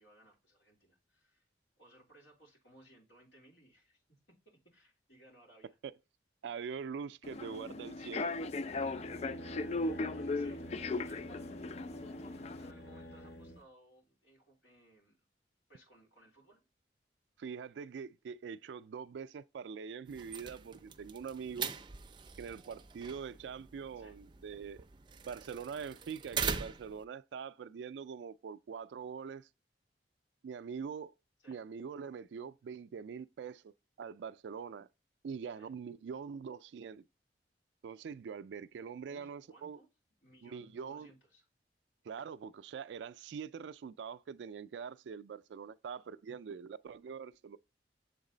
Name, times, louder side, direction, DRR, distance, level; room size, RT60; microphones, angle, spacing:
voice 1, 0.0-1.5 1.8-4.0 4.3-5.8 10.3-11.5 11.8-15.2 15.7-16.6 23.9-24.2 31.4-31.6 35.6-35.7 39.1-39.9 40.2-41.5, right 1 dB, 90° left, 3.4 m, -62 dB
voice 2, 6.4-8.4 17.4-21.7 22.4-24.9 25.3-29.5 30.4-31.1 31.5-34.9 35.2-37.0 37.8-39.8 40.4-41.1 42.0-47.6, right 6 dB, 85° right, 0.3 m, -44 dB
Human voice / Subway metro underground, 7.2-12.7, left 3 dB, 40° left, 0.3 m, -37 dB
sound 1, 8.3-13.6, equal, 65° left, 1.1 m, -48 dB
sound 2, 20.1-27.0, right 6 dB, 25° right, 0.4 m, -42 dB
7.3 x 3.9 x 3.8 m
head